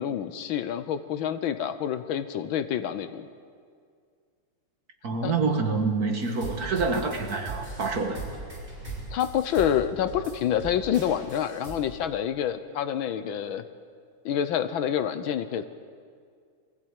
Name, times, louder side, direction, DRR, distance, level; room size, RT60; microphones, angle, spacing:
voice 1, 0.0-3.3 5.2-5.3 9.1-13.6 14.2-15.6, left 9 dB, 70° left, 11 dB, 1.5 m, -27 dB
voice 2, 5.0-8.2, right 4 dB, 45° right, 5 dB, 1.9 m, -27 dB
sound 1, 6.2-11.8, right 2 dB, 30° right, 5.9 m, -39 dB
23.0 x 16.0 x 8.9 m, 2.1 s
omnidirectional pair, 2.4 m